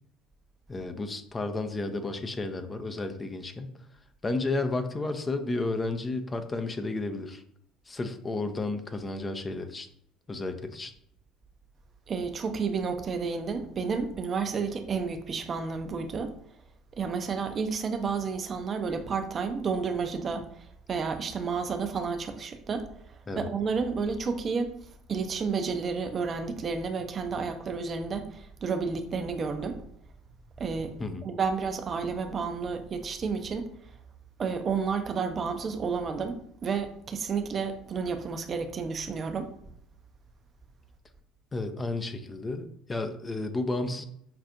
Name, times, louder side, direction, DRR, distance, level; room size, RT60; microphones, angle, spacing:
voice 1, 0.7-3.8 4.2-7.4 7.9-9.9 10.3-10.9 23.3-23.5 31.0-31.3 41.5-44.0, left 2 dB, 25° left, 8 dB, 0.5 m, -32 dB
voice 2, 12.1-16.3 17.0-22.9 23.4-24.7 25.1-29.8 30.6-30.9 31.2-33.7 34.4-39.5, right 5 dB, 40° right, 7 dB, 0.5 m, -31 dB
5.5 x 2.5 x 2.5 m, 0.70 s
figure-of-eight pair, 60°, 0 cm